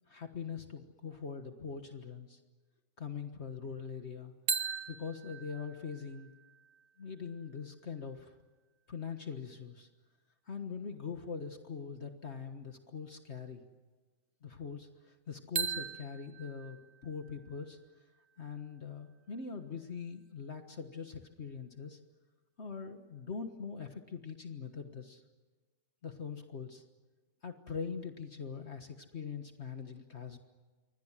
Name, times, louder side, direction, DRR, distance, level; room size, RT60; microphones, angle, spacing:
voice 1, 0.1-2.4 3.0-4.3 4.9-6.3 7.0-8.4 8.9-9.9 10.5-13.6 14.4-17.8 18.4-22.0 22.6-25.2 26.0-26.8 27.4-30.4, left 6 dB, 55° left, 6 dB, 1.7 m, -42 dB
sound 1, 4.5-8.3 15.5-19.4, right 6 dB, 70° right, 1.6 m, -41 dB
28.0 x 24.5 x 7.4 m, 1.3 s
omnidirectional pair, 1.4 m